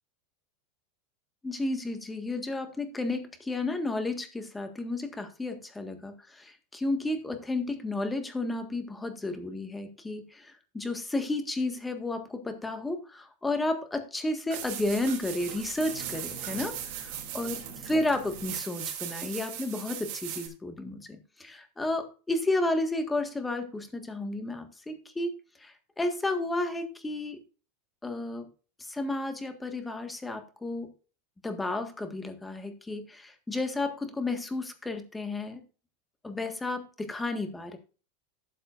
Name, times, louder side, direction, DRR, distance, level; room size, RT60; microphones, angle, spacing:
voice 1, 1.4-16.7 17.0-25.3 25.6-27.4 28.0-28.5 28.8-30.9 31.4-35.6 36.2-37.8, left 2 dB, 10° left, 7 dB, 1.6 m, -32 dB
sound 1, 14.5-20.5, right 9 dB, 55° right, 3.1 m, -38 dB
12.5 x 7.5 x 2.6 m, 0.35 s
supercardioid pair, 135°, 0 cm